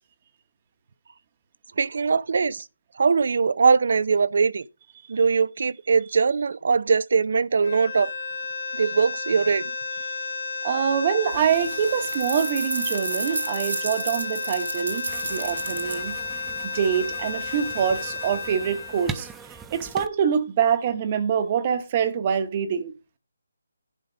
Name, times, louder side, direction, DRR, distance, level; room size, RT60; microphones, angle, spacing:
voice 1, 1.8-2.7 3.0-4.6 5.1-8.1 8.7-9.7, right 5 dB, 55° right, 0.5 m, -21 dB
sound 1, 7.6-19.8, left 4 dB, 60° left, 1.9 m, -33 dB
voice 2, 10.6-16.2 16.6-22.9, right 8 dB, 25° right, 1.1 m, -25 dB
sound 2, 11.3-16.1, right 3 dB, 90° right, 2.1 m, -32 dB
sound 3, 15.1-20.1, right 6 dB, 5° right, 0.4 m, -41 dB
11.0 x 5.1 x 5.0 m
hypercardioid pair, 165°, 0 cm